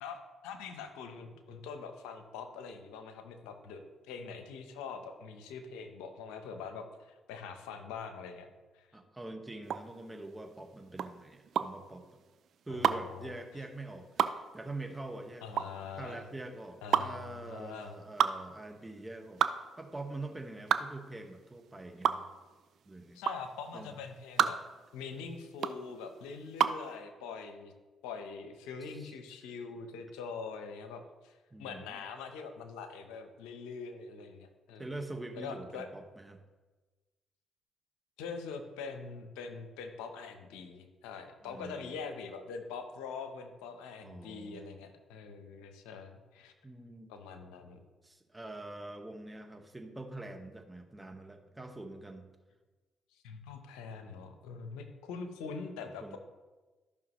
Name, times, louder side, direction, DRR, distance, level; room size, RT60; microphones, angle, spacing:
voice 1, 0.0-8.5 8.7-8.9 12.7-13.4 15.4-16.3 16.8-18.0 23.1-24.6 24.9-27.7 28.0-31.3 31.6-34.9 35.3-35.9 38.2-46.5 47.1-47.8 53.1-56.2, left 5 dB, 85° left, 7 dB, 0.8 m, -44 dB
voice 2, 8.9-12.1 12.7-15.7 16.0-22.3 22.9-23.2 23.7-24.0 28.9-29.1 31.5-32.0 34.8-36.4 41.4-42.0 44.0-44.8 46.6-47.1 48.0-52.3 56.0-56.2, right 2 dB, 15° right, 5 dB, 1.4 m, -45 dB
sound 1, 9.6-26.9, right 8 dB, 65° right, 0.4 m, -32 dB
14.0 x 5.7 x 3.1 m, 1.2 s
supercardioid pair, 55°, 0 cm